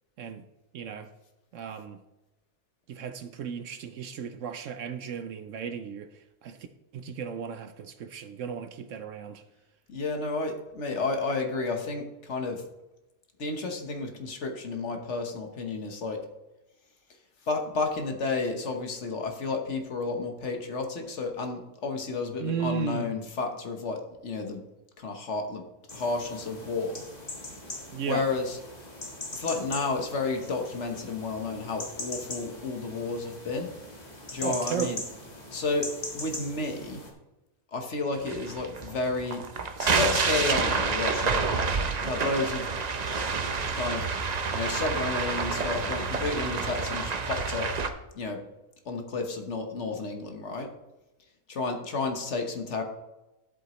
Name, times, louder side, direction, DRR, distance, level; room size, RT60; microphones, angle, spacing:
voice 1, 0.7-1.1 1.5-2.0 2.9-6.1 6.4-6.7 6.9-9.4 22.4-23.1 27.9-28.2 34.4-35.0, right 7 dB, 70° right, 0.8 m, -35 dB
voice 2, 9.9-12.6 13.4-16.2 17.5-24.6 25.0-25.6 25.9-27.0 28.0-28.6 29.3-33.7 34.3-35.0 35.5-35.9 36.1-37.0 37.7-39.4 39.8-41.4 42.0-42.7 43.6-44.0 44.5-47.7 48.1-48.4 48.8-50.7 51.5-52.8, left 3 dB, 55° left, 1.4 m, -31 dB
sound 1, 25.9-37.1, left 2 dB, 30° left, 1.7 m, -41 dB
sound 2, 38.2-47.9, right 4 dB, 45° right, 0.5 m, -28 dB
11.5 x 7.9 x 3.0 m
omnidirectional pair, 1.5 m